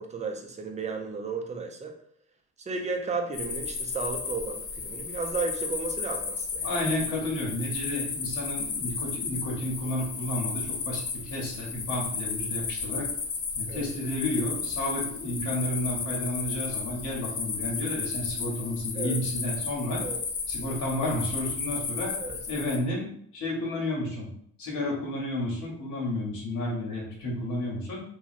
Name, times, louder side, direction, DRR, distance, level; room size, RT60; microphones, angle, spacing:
voice 1, 0.0-1.9 2.6-6.7 13.7-13.9 18.9-19.2 20.0-20.2 22.1-22.4, right 4 dB, 25° right, 3 dB, 0.5 m, -34 dB
sound 1, 3.3-22.8, left 5 dB, 55° left, 0.6 m, -34 dB
voice 2, 6.6-13.1 13.5-20.0 20.5-22.1 22.5-24.3 24.6-28.0, left 1 dB, 75° left, -3 dB, 1.1 m, -31 dB
2.9 x 2.3 x 2.5 m, 0.64 s
cardioid pair, 90°, 30 cm